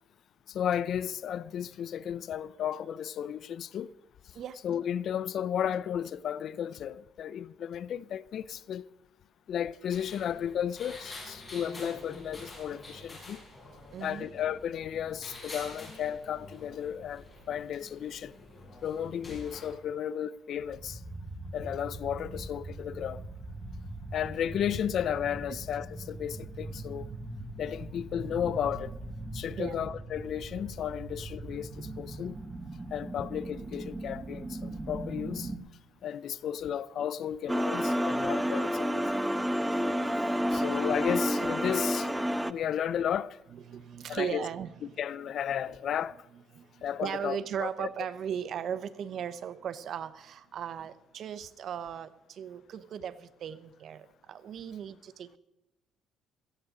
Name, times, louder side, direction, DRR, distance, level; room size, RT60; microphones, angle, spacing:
voice 1, 0.5-3.9 4.6-8.8 9.5-13.4 14.0-18.3 18.8-21.0 21.5-23.2 24.1-27.1 27.6-28.9 29.3-32.4 32.9-35.5 36.0-39.2 40.5-42.1 42.5-43.4 44.1-44.4 45.0-46.1 46.8-47.9, left 9 dB, 60° left, 0.4 m, -34 dB
sound 1, 9.9-19.7, left 2 dB, 25° left, 6.6 m, -47 dB
voice 2, 13.9-14.3 29.6-29.9 43.5-44.9 46.5-46.7 47.0-55.4, right 8 dB, 55° right, 0.8 m, -37 dB
sound 2, 20.6-35.6, right 2 dB, 20° right, 1.3 m, -41 dB
sound 3, 37.5-42.5, equal, 5° right, 0.5 m, -29 dB
17.5 x 14.5 x 3.8 m
cardioid pair, 110°, 0 cm